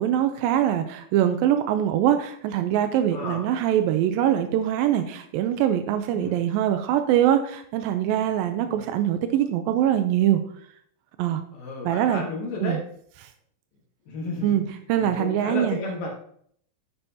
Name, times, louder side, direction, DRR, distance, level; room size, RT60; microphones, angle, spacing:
voice 1, 0.0-10.4 11.2-11.4 11.9-12.2 12.6-12.8 14.4-14.6 14.9-15.8, right 11 dB, 85° right, 8 dB, 2.1 m, -23 dB
voice 2, 3.1-3.4 6.1-6.4 8.6-8.8 11.5-12.8 14.1-14.6 15.0-16.2, left 3 dB, 65° left, -1 dB, 2.9 m, -32 dB
10.0 x 8.8 x 2.8 m, 0.63 s
omnidirectional pair, 4.7 m